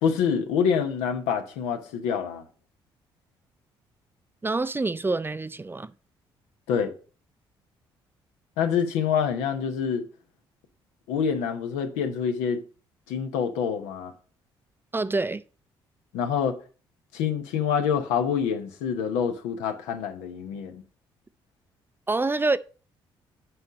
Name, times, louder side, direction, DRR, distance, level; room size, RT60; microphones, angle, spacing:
voice 1, 0.0-2.4 6.7-6.9 8.6-10.1 11.1-12.6 13.1-14.1 16.1-16.6 17.1-20.8, left 7 dB, 80° left, 0.9 m, -26 dB
voice 2, 4.4-5.9 14.9-15.4 22.1-22.6, right 3 dB, 20° right, 0.4 m, -26 dB
7.9 x 4.2 x 5.1 m
hypercardioid pair, 50°, 12 cm